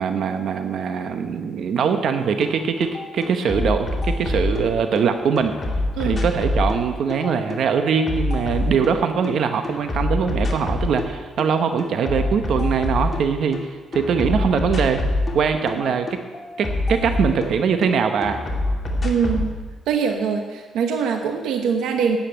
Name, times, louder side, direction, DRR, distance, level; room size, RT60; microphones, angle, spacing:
voice 1, 0.0-5.5 6.0-15.0 15.3-16.1 16.6-18.4, right 6 dB, 70° right, 7 dB, 1.0 m, -22 dB
sound 1, 2.4-2.5 2.8-5.0 5.4-9.3 9.6-11.1 11.4-13.6 13.9-17.9 18.2-19.5, left 2 dB, 30° left, 2.3 m, -25 dB
voice 2, 19.0-19.5 19.9-22.2, right 6 dB, 90° right, 5 dB, 1.1 m, -23 dB
10.0 x 8.4 x 9.0 m, 1.4 s
cardioid pair, 100°, 0 cm